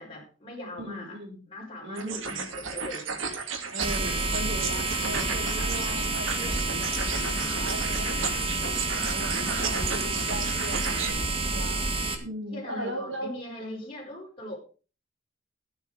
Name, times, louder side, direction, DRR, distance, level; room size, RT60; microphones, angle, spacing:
voice 1, 0.0-1.2 1.5-3.0 12.5-14.6, left 1 dB, 30° left, -3 dB, 5.0 m, -40 dB
voice 2, 0.8-1.4 1.8-2.4 3.6-8.5 8.9-13.4, right 1 dB, 65° right, 2 dB, 4.1 m, -38 dB
sound 1, 2.0-11.1, right 5 dB, 90° right, 2.8 m, -34 dB
sound 2, 3.8-12.1, right 2 dB, 30° right, 2.1 m, -29 dB
13.5 x 9.4 x 5.1 m, 0.36 s
head